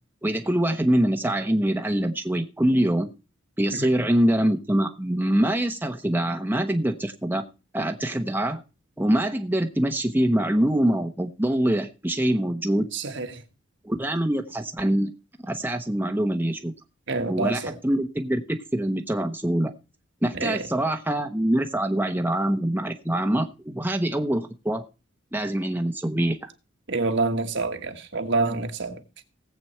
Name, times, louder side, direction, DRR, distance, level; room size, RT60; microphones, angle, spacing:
voice 1, 0.2-3.1 3.6-7.4 7.7-8.6 9.0-12.9 13.8-15.1 15.4-16.7 17.2-19.7 20.2-24.8 25.3-26.5, right 1 dB, 10° right, 1.0 m, -24 dB
voice 2, 12.9-13.3 17.1-17.7 20.4-20.6 26.9-29.0, right 3 dB, 60° right, 1.6 m, -27 dB
18.5 x 7.9 x 4.4 m
head